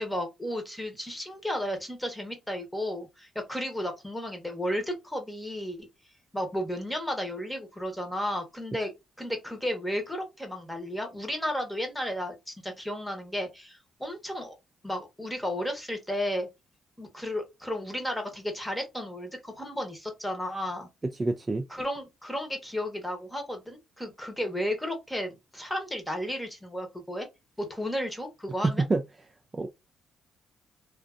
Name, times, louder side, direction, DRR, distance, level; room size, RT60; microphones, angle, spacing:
voice 1, 0.0-5.8 6.3-8.9 9.2-14.6 14.8-16.5 17.0-20.9 21.7-27.3 27.6-28.8, equal, 5° left, 1.0 m, -33 dB
voice 2, 21.2-21.7 28.6-29.0 29.5-29.7, right 3 dB, 25° right, 0.3 m, -26 dB
2.5 x 2.4 x 2.4 m
cardioid pair, 90°, 0 cm